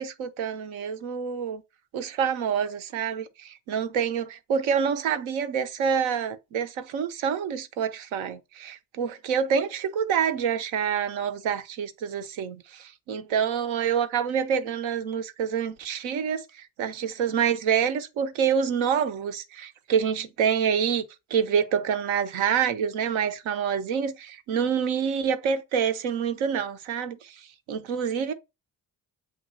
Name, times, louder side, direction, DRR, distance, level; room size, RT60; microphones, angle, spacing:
voice 1, 0.0-1.6 1.9-21.0 21.3-27.4 27.7-28.3, right 7 dB, 75° right, 0.8 m, -27 dB
7.5 x 2.7 x 2.6 m
hypercardioid pair, 45°, 49 cm